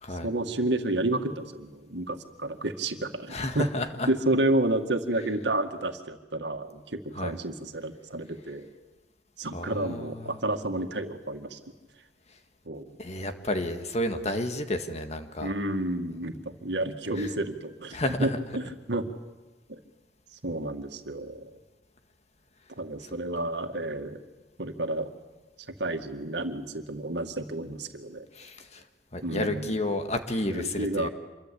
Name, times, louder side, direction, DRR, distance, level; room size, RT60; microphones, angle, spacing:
voice 1, 0.2-3.7 4.0-8.7 9.4-11.6 12.7-13.0 15.4-19.1 19.7-19.8 20.4-21.5 22.8-24.2 24.6-25.1 25.8-28.2 29.2-29.7 30.5-31.1, right 1 dB, 80° right, 6 dB, 2.0 m, -30 dB
voice 2, 3.3-4.1 7.2-7.4 9.5-10.4 13.0-15.5 17.2-17.3 17.9-18.4 28.3-28.8 29.1-31.1, left 1 dB, 40° left, 7 dB, 1.9 m, -31 dB
26.5 x 22.5 x 8.6 m, 1.1 s
head